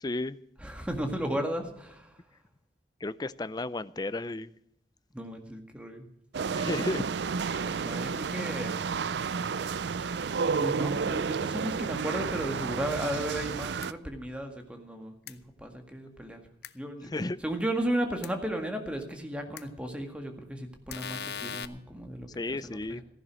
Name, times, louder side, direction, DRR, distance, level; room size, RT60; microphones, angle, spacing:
voice 1, 0.0-0.4 3.0-4.5 6.5-7.0 7.5-7.9 17.0-17.4 22.3-23.0, left 2 dB, 20° left, 0.5 m, -33 dB
voice 2, 0.6-2.2 5.1-6.1 7.5-8.8 10.0-16.4 16.7-23.0, right 1 dB, 5° right, 1.8 m, -35 dB
sound 1, 6.3-13.9, right 5 dB, 70° right, 0.4 m, -31 dB
sound 2, 13.8-13.9 15.3-15.4 16.6-16.7 18.2-18.3 19.6-19.7 20.9-21.7, left 8 dB, 65° left, 0.7 m, -38 dB
15.0 x 11.0 x 6.2 m
head